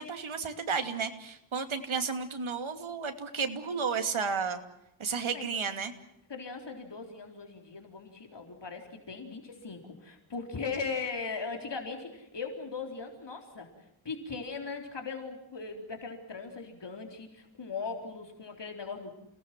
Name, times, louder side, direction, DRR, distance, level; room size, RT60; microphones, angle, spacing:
voice 1, 0.0-4.6 5.0-5.9, right 5 dB, 75° right, 7 dB, 2.8 m, -32 dB
voice 2, 6.3-13.7 14.0-19.1, left 4 dB, 60° left, 4 dB, 4.1 m, -39 dB
29.5 x 19.0 x 7.6 m, 0.79 s
wide cardioid pair, 100°, 48 cm